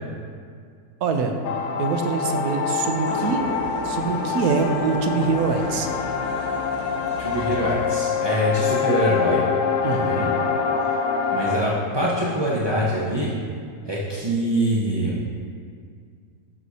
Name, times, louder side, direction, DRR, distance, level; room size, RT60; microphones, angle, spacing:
voice 1, 1.0-1.3 1.8-3.4 3.8-5.9 9.8-10.2, right 5 dB, 70° right, 4 dB, 1.0 m, -24 dB
sound 1, 1.4-11.6, left 6 dB, 70° left, 1.0 m, -25 dB
sound 2, 3.1-8.1, equal, 45° left, 1.3 m, -35 dB
voice 2, 7.2-9.4 9.9-10.3 11.3-13.3 13.8-15.2, equal, 35° right, -7 dB, 0.4 m, -24 dB
11.5 x 6.2 x 2.8 m, 2.2 s
omnidirectional pair, 1.9 m